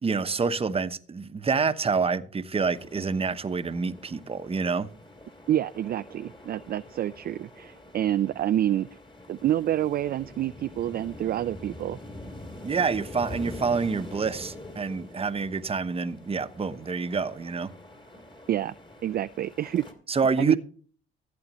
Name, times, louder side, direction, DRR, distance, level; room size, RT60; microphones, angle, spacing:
voice 1, 0.0-4.9 12.6-17.7 20.1-20.6, right 5 dB, 30° right, 0.9 m, -27 dB
sound 1, 2.7-19.9, left 1 dB, 25° left, 2.6 m, -45 dB
voice 2, 5.5-8.9 9.3-12.0 18.5-18.7 19.0-19.8 20.4-20.6, right 12 dB, 50° right, 0.4 m, -27 dB
14.5 x 8.7 x 3.0 m
cardioid pair, 90°, 20 cm